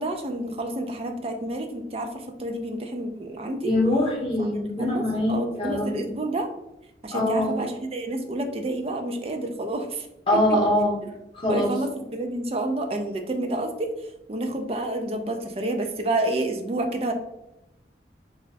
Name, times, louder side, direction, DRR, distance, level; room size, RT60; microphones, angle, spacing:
voice 1, 0.0-2.1 2.4-3.7 4.8-6.5 7.0-10.1 11.5-13.9 14.3-17.1, right 1 dB, 35° right, 4 dB, 0.4 m, -29 dB
voice 2, 3.6-6.0 7.1-7.6 10.3-11.0 11.3-11.8, left 1 dB, 30° left, -3 dB, 1.0 m, -23 dB
3.0 x 2.4 x 4.0 m, 0.89 s
head